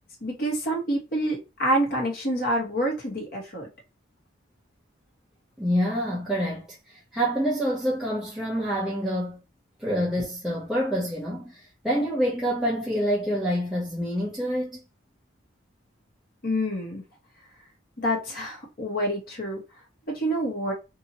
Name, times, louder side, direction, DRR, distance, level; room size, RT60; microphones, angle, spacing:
voice 1, 0.2-3.7 16.4-17.0 18.0-19.6 20.1-20.7, equal, 50° left, 1.3 m, -27 dB
voice 2, 5.6-9.4 9.8-14.8, equal, ahead, 0.6 m, -27 dB
2.9 x 2.6 x 2.8 m
head